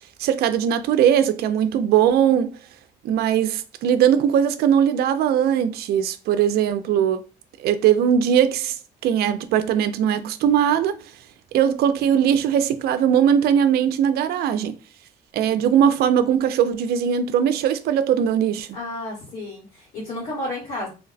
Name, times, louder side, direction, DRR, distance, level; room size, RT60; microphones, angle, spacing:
voice 1, 0.2-2.5 3.0-7.2 7.6-8.8 9.0-10.9 11.5-14.7 15.3-18.8, right 9 dB, 65° right, 0.4 m, -20 dB
voice 2, 18.7-20.9, left 1 dB, 60° left, 1.7 m, -31 dB
2.8 x 2.1 x 4.0 m
cardioid pair, 110°, 17 cm